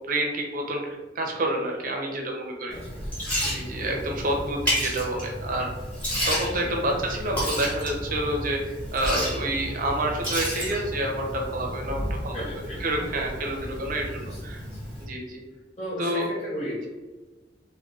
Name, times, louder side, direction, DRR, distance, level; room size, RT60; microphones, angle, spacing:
voice 1, 0.1-2.8 3.4-5.7 6.2-14.6 15.0-15.4 16.0-16.3, right 1 dB, 45° right, 1 dB, 0.6 m, -28 dB
voice 2, 2.7-3.1 6.6-6.9 12.3-13.1 14.2-14.8 15.8-16.9, equal, 35° left, -7 dB, 0.5 m, -36 dB
Liquid, 2.7-15.0, equal, 10° left, 1.0 m, -32 dB
2.4 x 2.1 x 3.8 m, 1.2 s
head